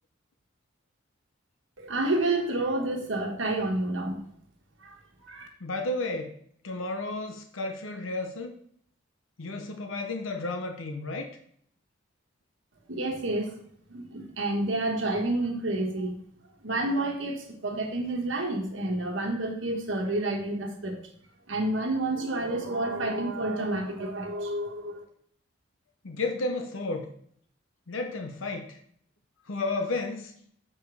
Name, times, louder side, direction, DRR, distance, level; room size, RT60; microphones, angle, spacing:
voice 1, 1.8-4.2 4.8-5.5 12.9-13.5 13.9-16.2 16.6-21.0 21.5-25.0, right 2 dB, 70° right, 1 dB, 1.3 m, -29 dB
voice 2, 5.6-6.4 6.6-8.5 9.4-11.3 26.0-27.1 27.9-28.8 29.5-30.3, left 2 dB, 85° left, 4 dB, 0.9 m, -32 dB
7.3 x 5.0 x 4.8 m, 0.64 s
head